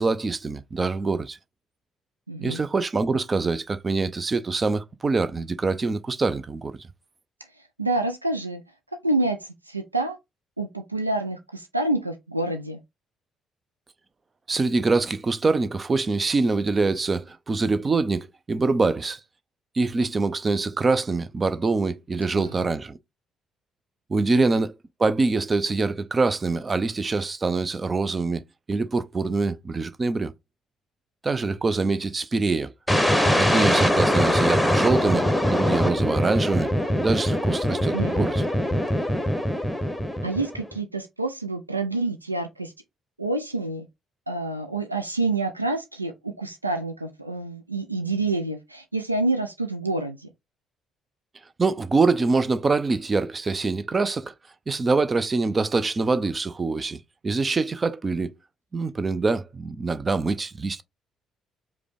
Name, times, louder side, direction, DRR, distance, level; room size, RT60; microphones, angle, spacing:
voice 1, 0.0-1.4 2.4-6.9 14.5-19.2 19.7-23.0 24.1-24.7 25.0-28.4 28.7-30.3 31.2-32.7 33.4-36.7 37.0-38.4 51.6-54.3 54.7-57.0 57.2-58.3 58.7-60.8, right 3 dB, 30° right, 0.5 m, -24 dB
voice 2, 2.3-2.6 7.8-8.6 9.0-10.2 10.6-12.8 22.4-22.5 37.9-38.3 40.2-42.7 43.2-43.9 44.3-50.3, right 2 dB, 90° right, 0.3 m, -27 dB
sound 1, 32.9-40.7, equal, ahead, 1.0 m, -22 dB
4.8 x 2.2 x 3.3 m
figure-of-eight pair, 45°, 0 cm